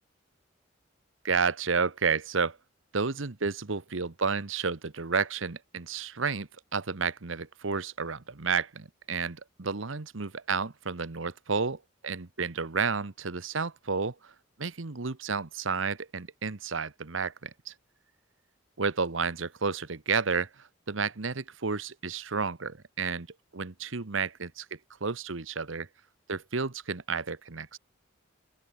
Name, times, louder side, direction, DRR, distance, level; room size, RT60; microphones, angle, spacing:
voice 1, 1.2-2.6 2.9-14.3 14.6-17.7 18.8-23.3 23.5-25.9 26.3-27.8, right 5 dB, 75° right, 1.1 m, -31 dB
open air
head